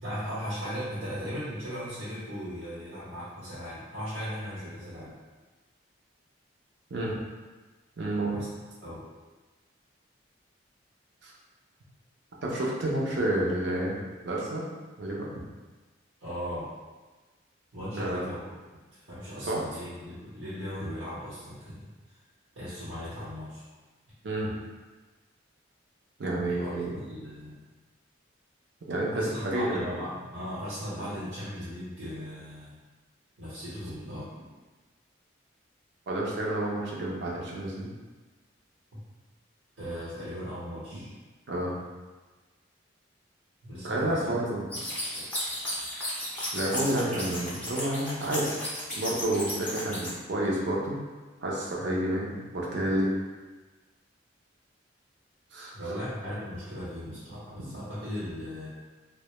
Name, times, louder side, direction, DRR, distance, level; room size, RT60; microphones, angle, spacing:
voice 1, 0.0-5.2 8.3-8.5 8.8-9.0 16.2-16.7 17.7-18.4 18.9-21.9 22.5-23.6 26.4-27.6 29.1-32.8 33.4-34.3 39.8-41.1 43.6-44.3 45.1-45.3 51.8-51.9 55.7-58.7, equal, 90° right, -12 dB, 0.9 m, -37 dB
voice 2, 8.0-8.4 11.2-11.3 12.4-14.6 15.0-15.3 17.8-18.3 19.4-19.6 24.2-24.6 26.2-27.0 28.9-29.8 30.9-31.1 34.1-34.2 36.1-37.9 41.5-41.7 43.8-44.7 46.5-48.5 49.0-51.0 51.4-53.1 55.5-55.7, right 1 dB, 60° right, -4 dB, 0.5 m, -30 dB
sound 1, 44.7-50.1, left 1 dB, 5° left, 0.4 m, -34 dB
2.1 x 2.1 x 2.9 m, 1.3 s
head